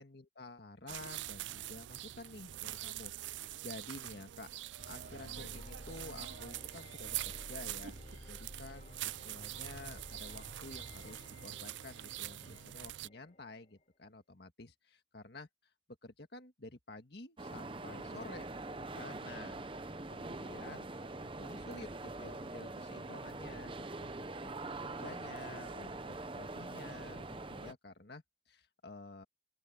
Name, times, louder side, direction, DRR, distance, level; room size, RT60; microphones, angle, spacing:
voice 1, 0.0-4.5 4.9-8.0 8.3-15.5 16.0-19.7 20.1-20.9 21.2-24.1 24.4-24.5 24.8-29.2, left 2 dB, 55° left, 1.9 m, -51 dB
sound 1, 0.9-13.1, right 14 dB, 70° right, 0.4 m, -44 dB
sound 2, 4.8-13.8, left 1 dB, 35° left, 5.4 m, -53 dB
sound 3, 17.4-27.7, right 2 dB, 25° right, 0.9 m, -44 dB
open air
head